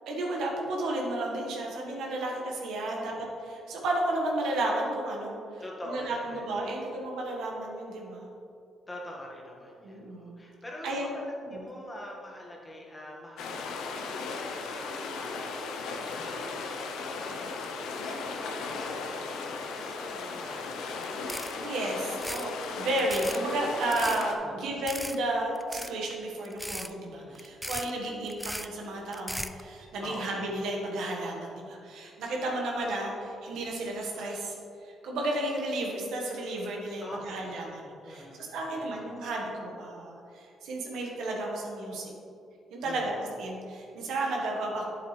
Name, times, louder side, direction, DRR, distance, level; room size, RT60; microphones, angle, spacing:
voice 1, 0.1-8.3 9.8-10.4 10.8-11.2 11.4-11.6 21.6-22.5 22.8-34.6 34.8-42.1 42.7-44.8, right 1 dB, 80° right, -1 dB, 1.4 m, -33 dB
voice 2, 2.9-3.2 5.6-6.9 8.9-21.1 24.4-24.6 27.2-27.5 30.0-30.4 37.0-37.8 38.0-38.9 42.8-43.2, left 1 dB, 20° left, -2 dB, 1.6 m, -45 dB
sound 1, 13.4-24.3, left 4 dB, 85° left, 0.7 m, -36 dB
sound 2, 21.0-21.1 21.3-21.7 22.1-22.5 22.9-23.4 23.8-24.3 24.9-25.2 25.6-26.1 26.5-26.9 27.4-27.9 28.3-28.7 29.1-29.6, equal, ahead, 0.3 m, -37 dB
8.6 x 7.4 x 3.3 m, 2.5 s
cardioid pair, 90°, 0 cm